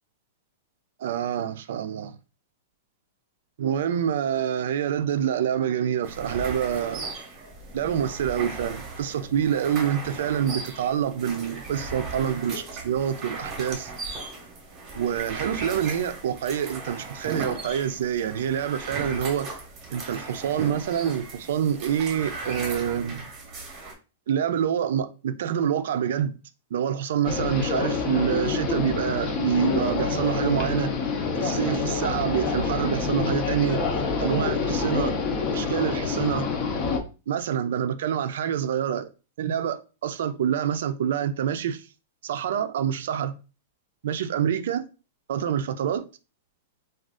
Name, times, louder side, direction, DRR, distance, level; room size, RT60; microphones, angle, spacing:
voice 1, 1.0-2.1 3.6-7.0 7.7-13.9 15.0-19.5 19.9-23.2 24.3-26.4 26.7-30.9 31.4-33.8 34.2-35.1 35.5-36.5 37.3-39.1 39.4-41.8 42.2-43.4 44.0-44.9 45.3-46.0, right 9 dB, 65° right, 0.4 m, -26 dB
sound 1, 6.0-23.9, right 3 dB, 20° right, 0.8 m, -37 dB
sound 2, 27.2-37.0, left 4 dB, 30° left, 0.5 m, -27 dB
2.5 x 2.3 x 3.5 m
supercardioid pair, 165°, 0 cm